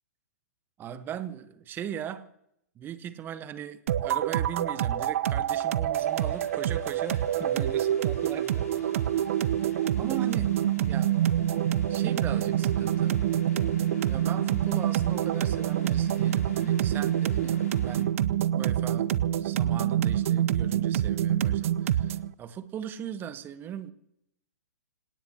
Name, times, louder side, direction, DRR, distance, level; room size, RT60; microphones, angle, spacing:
voice 1, 0.8-2.3 2.7-9.0 10.0-10.5 10.8-11.1 11.9-13.2 14.1-18.1 18.5-19.1 19.4-23.9, right 9 dB, 25° right, 13 dB, 1.2 m, -39 dB
sound 1, 3.9-22.3, right 11 dB, 55° right, 0.6 m, -26 dB
sound 2, 5.9-18.0, left 4 dB, 65° left, 5.8 m, -51 dB
27.0 x 17.5 x 2.9 m, 0.77 s
figure-of-eight pair, 115°, 9 cm